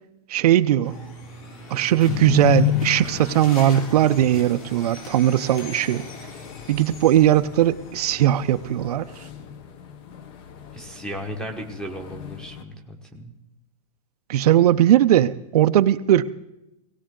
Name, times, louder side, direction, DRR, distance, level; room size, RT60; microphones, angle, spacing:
voice 1, 0.3-1.0 1.7-6.0 6.7-9.3 14.3-16.2, right 12 dB, 70° right, 11 dB, 0.6 m, -19 dB
sound 1, 0.8-8.9, left 2 dB, 55° left, 3.4 m, -40 dB
sound 2, 2.0-12.6, left 11 dB, 25° left, 0.7 m, -32 dB
voice 2, 10.7-13.3, equal, 5° left, 6 dB, 1.1 m, -35 dB
18.5 x 18.0 x 3.8 m, 0.89 s
supercardioid pair, 170°, 21 cm